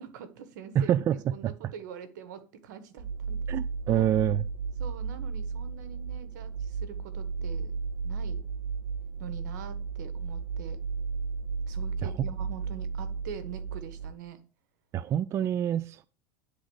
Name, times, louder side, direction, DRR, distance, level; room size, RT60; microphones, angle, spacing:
voice 1, 0.0-0.9 1.3-3.4 3.9-4.1 4.8-7.7 8.0-8.4 9.2-10.8 11.7-14.4, right 8 dB, 80° right, 1.4 m, -44 dB
voice 2, 0.8-1.2 1.4-1.5 3.5-4.4 12.0-12.1 14.9-16.0, right 10 dB, 30° right, 0.4 m, -26 dB
sound 1, 3.0-14.1, right 5 dB, 45° right, 1.8 m, -34 dB
9.9 x 4.0 x 6.3 m
supercardioid pair, 135°, 10 cm